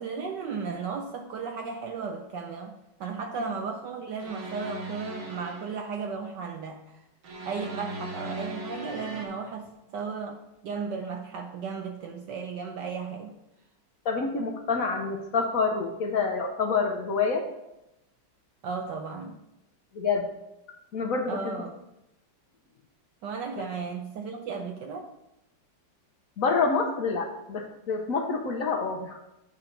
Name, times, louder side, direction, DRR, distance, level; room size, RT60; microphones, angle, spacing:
voice 1, 0.0-7.0 7.5-13.4 18.6-19.4 21.3-21.8 23.2-25.1, right 5 dB, 70° right, 3 dB, 1.2 m, -35 dB
sound 1, 4.2-5.9 7.2-9.3, right 1 dB, 85° right, 2.2 m, -38 dB
voice 2, 14.0-17.4 19.9-20.3 20.9-21.6 26.4-29.2, left 4 dB, 60° left, 4 dB, 1.0 m, -27 dB
8.9 x 4.4 x 5.1 m, 0.90 s
omnidirectional pair, 2.2 m